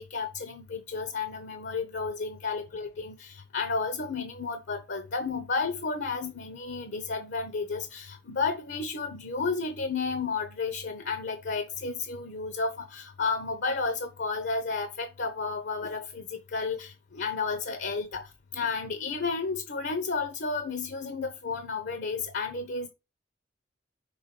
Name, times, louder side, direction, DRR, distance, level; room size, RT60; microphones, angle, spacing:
voice 1, 0.0-22.9, left 4 dB, 65° left, 0.8 m, -32 dB
5.7 x 3.6 x 5.7 m
head